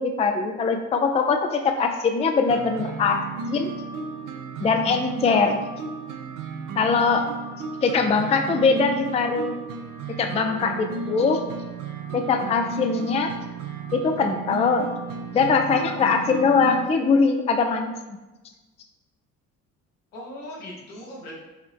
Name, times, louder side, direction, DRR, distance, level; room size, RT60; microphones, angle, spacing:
voice 1, 0.0-3.2 3.5-3.7 4.6-5.7 6.8-7.3 7.8-9.6 10.2-11.4 12.1-13.3 13.9-14.9 15.3-17.9, left 4 dB, 15° left, 6 dB, 0.4 m, -22 dB
sound 1, 2.5-16.9, right 4 dB, 50° right, 0.6 m, -34 dB
voice 2, 10.6-11.5 20.1-21.3, left 1 dB, 75° left, -3 dB, 1.3 m, -40 dB
5.5 x 2.8 x 3.3 m, 1.1 s
figure-of-eight pair, 45°, 41 cm